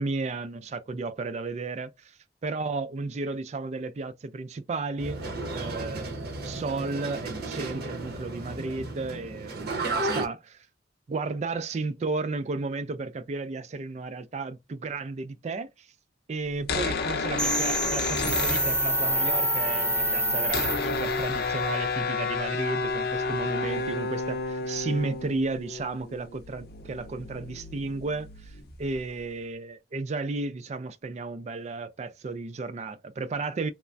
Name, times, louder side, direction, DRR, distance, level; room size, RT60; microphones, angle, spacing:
voice 1, 0.0-5.2 5.5-6.1 6.4-10.7 11.1-15.9 16.3-33.7, right 3 dB, 40° right, 0.3 m, -33 dB
sound 1, 5.0-10.3, right 2 dB, 60° right, 0.8 m, -33 dB
sound 2, 16.5-19.3 19.5-19.6 19.8-29.2, left 4 dB, 55° left, 0.5 m, -31 dB
sound 3, 17.4-21.3, right 1 dB, 15° right, 0.7 m, -26 dB
3.2 x 2.1 x 2.4 m
head